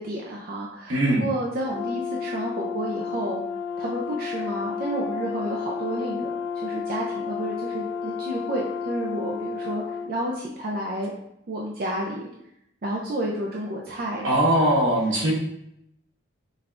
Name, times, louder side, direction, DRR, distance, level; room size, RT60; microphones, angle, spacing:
voice 1, 0.0-3.4 3.8-6.3 6.6-11.1 11.5-12.3 12.8-14.6, right 1 dB, 50° right, -3 dB, 0.4 m, -31 dB
voice 2, 0.9-1.2 14.2-15.3, right 1 dB, 75° right, -3 dB, 1.0 m, -20 dB
Brass instrument, 1.7-10.1, left 6 dB, 65° left, 0.3 m, -31 dB
5.1 x 2.2 x 2.5 m, 0.77 s
head